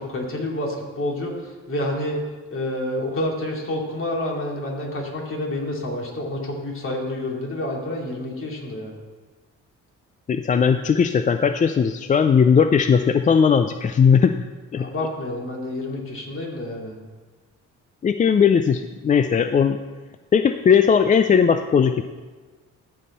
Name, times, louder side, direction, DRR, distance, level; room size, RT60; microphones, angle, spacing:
voice 1, 0.0-2.2 2.5-8.9 14.8-17.0, left 1 dB, 45° left, -1 dB, 2.5 m, -28 dB
voice 2, 10.3-14.3 14.7-14.9 18.0-19.8 20.3-22.0, left 6 dB, 25° left, 9 dB, 0.3 m, -18 dB
14.5 x 5.5 x 4.2 m, 1.4 s
cardioid pair, 90°, 30 cm